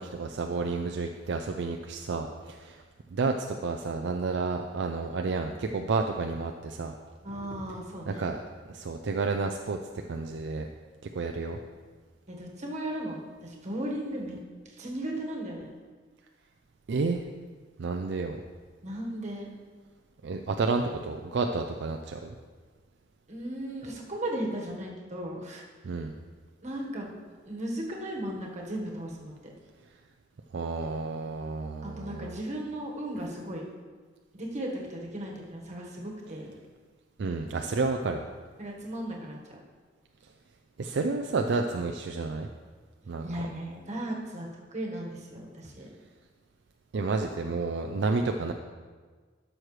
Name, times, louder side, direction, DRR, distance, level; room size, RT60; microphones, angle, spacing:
voice 1, 0.0-2.8 3.1-6.9 8.1-8.4 8.7-10.7 11.2-11.6 16.9-17.2 17.8-18.4 20.2-22.4 25.8-26.1 30.5-32.4 37.2-38.2 40.8-42.5 43.1-43.3 46.9-48.5, right 3 dB, 65° right, 4 dB, 0.4 m, -30 dB
voice 2, 7.2-8.3 12.3-14.4 14.6-15.7 18.8-19.5 23.3-25.6 26.6-27.1 27.5-29.3 31.8-33.6 34.3-36.5 38.6-39.6 43.2-45.9, right 1 dB, 40° right, -1 dB, 1.4 m, -36 dB
12.0 x 6.3 x 3.2 m, 1.5 s
head